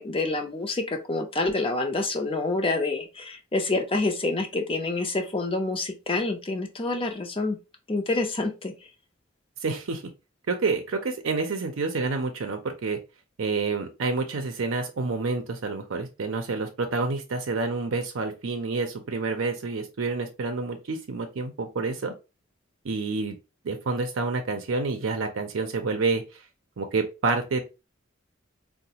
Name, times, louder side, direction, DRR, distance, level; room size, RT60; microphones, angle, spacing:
voice 1, 0.0-7.6 7.9-8.7, left 2 dB, 25° left, 4 dB, 0.6 m, -27 dB
voice 2, 9.6-10.0 10.5-13.0 13.4-22.1 22.8-23.4 23.6-26.4 26.8-27.6, right 4 dB, 70° right, 5 dB, 0.5 m, -28 dB
4.0 x 2.1 x 2.8 m, 0.28 s
head